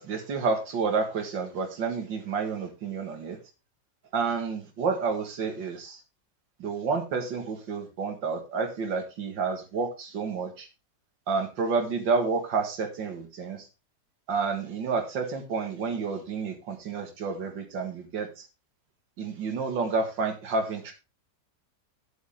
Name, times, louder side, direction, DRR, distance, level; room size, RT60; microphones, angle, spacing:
voice 1, 0.0-3.4 4.1-6.0 6.6-10.7 11.3-13.7 14.3-18.4 19.2-20.9, right 4 dB, 90° right, 4 dB, 2.4 m, -30 dB
10.0 x 8.5 x 3.7 m, 0.29 s
omnidirectional pair, 2.0 m